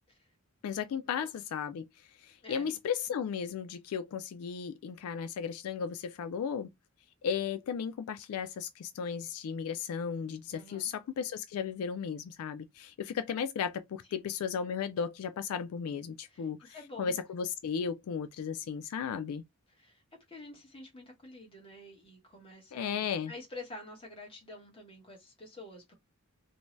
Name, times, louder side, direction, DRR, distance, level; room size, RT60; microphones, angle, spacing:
voice 1, 0.6-1.9 2.2-6.7 7.2-19.4 22.7-23.3, left 7 dB, 80° left, 0.3 m, -35 dB
voice 2, 2.4-2.8 10.5-10.9 14.1-14.3 16.3-17.2 19.7-20.0 20.3-25.9, left 2 dB, 25° left, 1.0 m, -49 dB
2.6 x 2.2 x 3.0 m
head